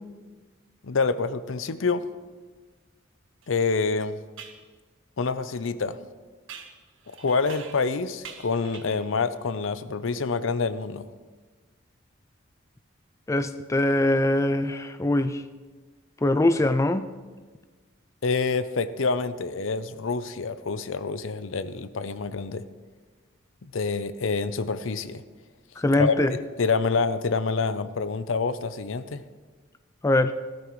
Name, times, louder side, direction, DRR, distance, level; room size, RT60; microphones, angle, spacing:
voice 1, 0.8-2.1 3.5-4.2 5.2-6.0 7.2-11.0 18.2-22.6 23.6-25.2 25.9-29.2, left 4 dB, 75° left, 12 dB, 0.6 m, -27 dB
sound 1, 3.4-3.5 4.4-4.6 6.5-7.9 8.2-9.1, right 6 dB, 75° right, 1.3 m, -44 dB
voice 2, 13.3-15.4 16.2-17.1 25.8-26.3 30.0-30.3, left 1 dB, 15° left, 10 dB, 0.3 m, -22 dB
18.0 x 13.0 x 3.1 m, 1.4 s
head